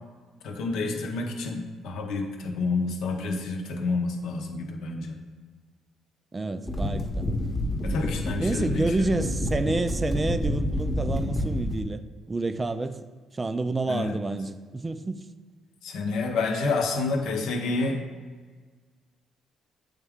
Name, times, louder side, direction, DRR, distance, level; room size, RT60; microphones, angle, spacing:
voice 1, 0.4-5.2 7.8-9.3 13.9-14.2 15.8-18.0, left 3 dB, 80° left, 3 dB, 0.8 m, -29 dB
voice 2, 6.3-7.3 8.4-12.0 12.3-13.0 13.3-15.2, right 2 dB, 25° right, 11 dB, 0.3 m, -29 dB
sound 1, 6.7-11.8, left 1 dB, 10° left, 0.8 m, -28 dB
8.2 x 3.6 x 3.5 m, 1.5 s
cardioid pair, 100°, 0 cm